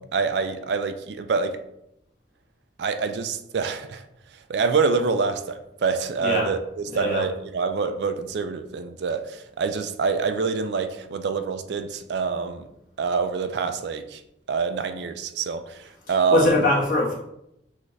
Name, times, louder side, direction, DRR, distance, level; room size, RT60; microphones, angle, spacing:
voice 1, 0.1-1.6 2.8-4.0 4.5-12.7 13.0-14.2 14.5-16.6, right 5 dB, 65° right, 0.4 m, -26 dB
voice 2, 6.2-6.5 6.9-7.2 16.1-17.2, left 2 dB, 50° left, 1.5 m, -22 dB
6.3 x 2.5 x 3.2 m
head